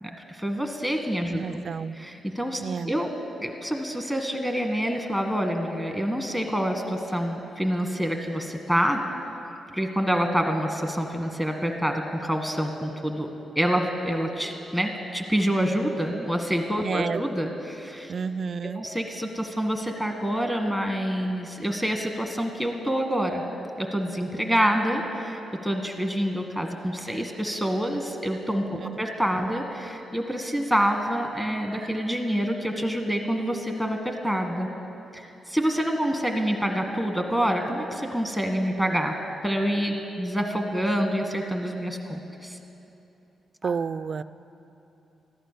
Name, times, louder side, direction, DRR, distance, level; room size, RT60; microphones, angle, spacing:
voice 1, 0.0-1.6 2.0-3.1 3.4-9.0 9.7-13.3 13.5-18.1 18.6-23.4 23.8-28.7 29.0-34.7 35.1-39.2 39.4-42.6 43.6-43.7, equal, 10° left, 4 dB, 1.5 m, -27 dB
voice 2, 1.3-2.0 2.6-2.9 16.8-17.2 18.1-18.8 28.7-29.0 43.6-44.2, right 5 dB, 55° right, 15 dB, 0.3 m, -30 dB
14.5 x 12.0 x 6.7 m, 2.9 s
cardioid pair, 80°, 0 cm